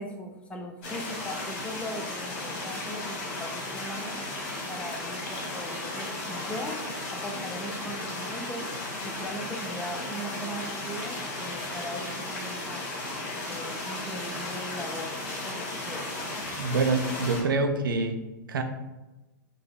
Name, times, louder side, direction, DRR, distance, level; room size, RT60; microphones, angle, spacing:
voice 1, 0.0-4.2 4.7-6.8 7.2-8.6 9.0-12.9 13.4-15.1 15.4-16.1, equal, 10° left, 2 dB, 0.4 m, -39 dB
sound 1, 0.8-17.4, left 2 dB, 45° left, 1.0 m, -35 dB
voice 2, 16.6-18.2 18.5-18.6, right 3 dB, 75° right, 6 dB, 0.4 m, -26 dB
3.9 x 2.6 x 2.3 m, 1.1 s
hypercardioid pair, 110°, 11 cm